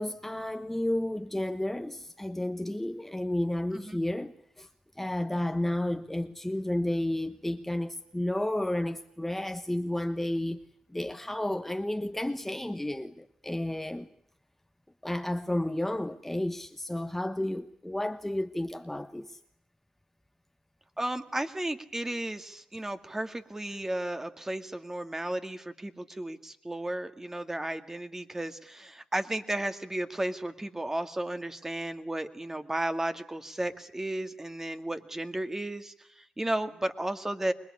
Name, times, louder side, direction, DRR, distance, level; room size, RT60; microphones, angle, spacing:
voice 1, 0.0-4.7 5.0-10.6 10.9-14.1 15.0-19.4, left 1 dB, 10° left, 1.2 m, -32 dB
voice 2, 21.0-37.5, right 1 dB, 20° right, 2.1 m, -34 dB
25.5 x 21.0 x 9.8 m
supercardioid pair, 55°, 2 cm